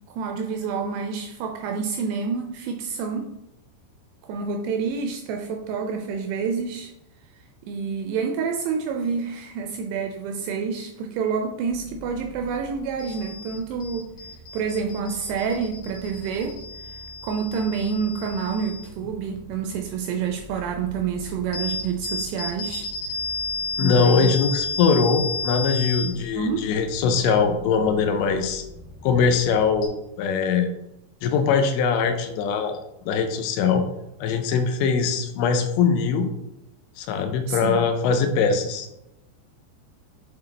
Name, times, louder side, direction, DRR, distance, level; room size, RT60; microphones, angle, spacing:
voice 1, 0.0-3.4 4.3-6.9 7.6-14.1 14.5-16.6 17.2-22.9 23.8-24.3 26.3-26.7 37.5-37.9, right 6 dB, 85° right, 4 dB, 2.4 m, -28 dB
sound 1, 11.7-29.9, left 3 dB, 65° left, 2.9 m, -34 dB
voice 2, 23.8-28.6 29.0-30.7 31.2-32.8 33.1-33.8 34.2-36.3 37.0-38.9, left 5 dB, 80° left, 6 dB, 2.8 m, -22 dB
8.4 x 4.0 x 3.3 m, 0.87 s
omnidirectional pair, 5.2 m